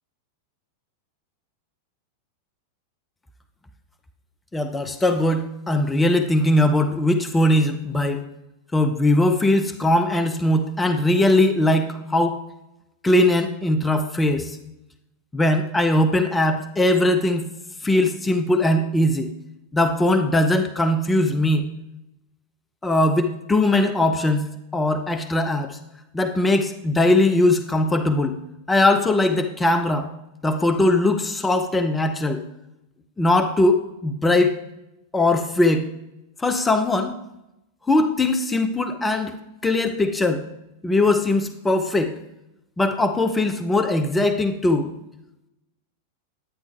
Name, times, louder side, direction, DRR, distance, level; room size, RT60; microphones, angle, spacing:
voice 1, 4.5-8.2 8.7-12.4 13.0-14.6 15.3-17.4 17.8-19.3 19.7-21.6 22.8-24.4 24.7-25.8 26.1-28.4 28.7-30.1 30.4-32.4 33.2-34.5 35.1-35.8 36.4-37.2 37.9-39.3 39.6-40.4 40.8-42.1 42.8-44.9, left 1 dB, 10° left, 7 dB, 0.7 m, -20 dB
10.0 x 9.4 x 3.4 m, 0.89 s
figure-of-eight pair, 90°, 0 cm